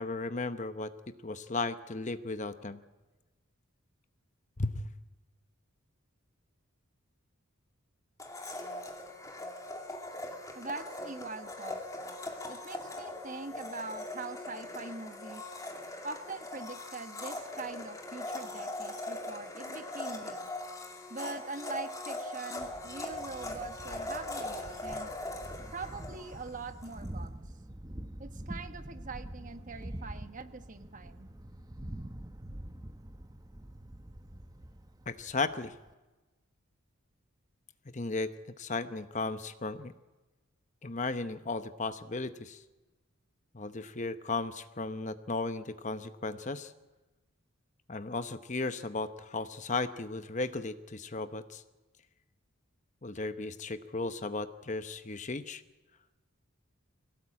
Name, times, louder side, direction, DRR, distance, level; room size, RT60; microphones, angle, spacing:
voice 1, 0.0-2.8 4.6-4.9 35.1-35.7 37.9-38.3 38.6-39.9 40.8-42.6 43.5-46.7 47.9-51.6 53.0-55.6, left 3 dB, 35° left, 11 dB, 0.9 m, -35 dB
Domestic sounds home sounds, 8.2-27.0, left 2 dB, 15° left, 2.5 m, -41 dB
voice 2, 10.5-11.8 12.5-15.4 16.0-20.5 21.1-25.1 25.7-27.4 28.2-31.3, right 3 dB, 35° right, 9 dB, 1.3 m, -43 dB
Thunder, 22.6-35.9, right 1 dB, 20° right, 0.8 m, -45 dB
23.0 x 17.5 x 8.7 m, 1.1 s
head